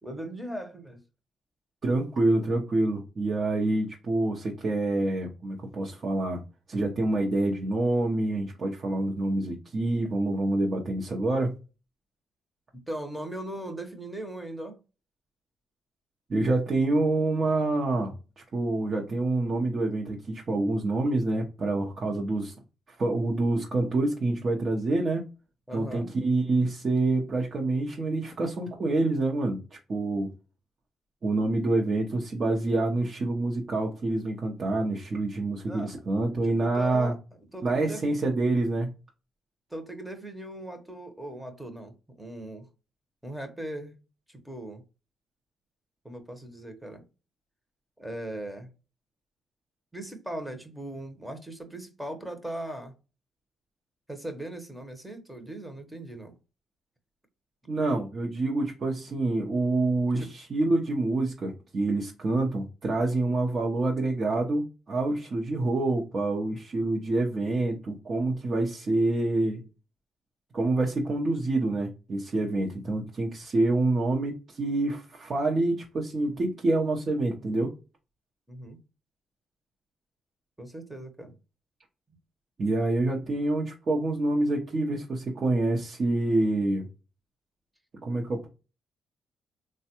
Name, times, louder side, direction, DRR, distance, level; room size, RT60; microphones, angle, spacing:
voice 1, 0.0-1.0 12.7-14.8 25.7-26.1 35.6-35.9 36.3-37.2 37.5-38.0 39.7-42.7 43.2-44.0 44.3-44.8 46.0-47.0 48.0-48.7 49.9-52.9 54.1-56.4 60.2-60.3 78.5-78.8 80.6-81.3, right 1 dB, 5° right, 0.8 m, -39 dB
voice 2, 1.8-6.4 6.7-11.6 16.3-22.5 23.0-25.3 25.7-30.3 31.2-37.1 37.6-38.9 57.7-69.6 70.5-77.7 82.6-86.9 88.0-88.5, right 2 dB, 40° right, 0.7 m, -27 dB
3.3 x 2.2 x 2.8 m
cardioid pair, 90°, 0 cm